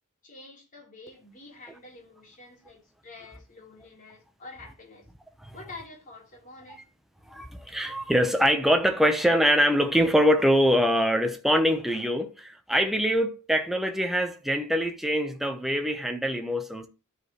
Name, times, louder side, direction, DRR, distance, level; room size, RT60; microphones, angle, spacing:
voice 1, 0.2-5.1 5.5-6.9, left 3 dB, 40° left, 3.5 m, -47 dB
voice 2, 7.3-16.9, equal, ahead, 0.8 m, -24 dB
12.5 x 5.0 x 3.1 m
head